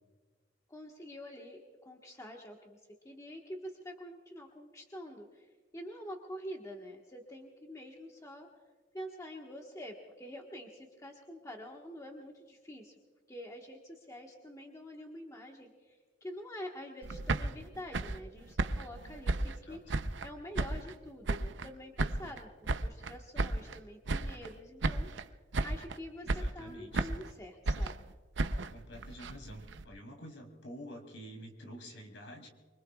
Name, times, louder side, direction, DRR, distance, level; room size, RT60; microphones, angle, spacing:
voice 1, 0.7-2.8 3.0-5.5 5.7-8.5 8.9-12.9 13.3-19.8 20.2-25.1 25.6-27.9, equal, 15° left, 0 dB, 1.4 m, -46 dB
sound 1, 17.0-20.3 20.5-21.7 22.0-23.8 24.1-24.6 24.8-25.3 25.5-26.0 26.3-27.3 27.7-29.8, right 2 dB, 75° right, 0.7 m, -34 dB
voice 2, 19.5-20.0 26.2-27.1 28.5-32.5, equal, 75° left, 3 dB, 3.4 m, -49 dB
24.5 x 24.5 x 2.4 m, 1.5 s
head